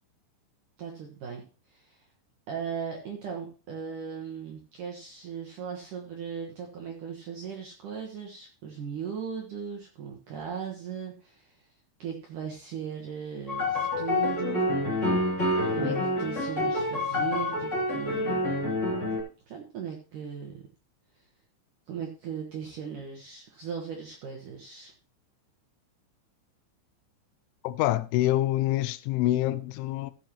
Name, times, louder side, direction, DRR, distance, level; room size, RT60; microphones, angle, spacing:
voice 1, 0.8-1.4 1.7-2.1 2.5-11.7 12.0-14.8 15.7-18.4 19.5-20.6 21.9-24.9, right 7 dB, 70° right, 2.0 m, -38 dB
sound 1, 13.5-19.2, left 2 dB, 25° left, 1.9 m, -27 dB
voice 2, 27.6-30.1, left 15 dB, 90° left, 3.1 m, -26 dB
15.0 x 7.7 x 3.0 m
omnidirectional pair, 5.5 m